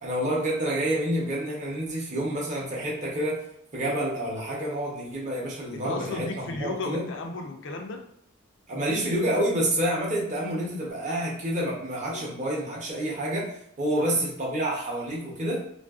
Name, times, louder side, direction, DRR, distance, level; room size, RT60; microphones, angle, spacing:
voice 1, 0.0-3.4 3.7-7.0 8.7-13.5 13.8-15.6, right 1 dB, 35° right, -4 dB, 0.8 m, -28 dB
voice 2, 5.8-8.0 12.1-12.3 14.0-14.2, left 3 dB, 60° left, 3 dB, 0.5 m, -34 dB
3.3 x 2.5 x 2.3 m, 0.72 s
head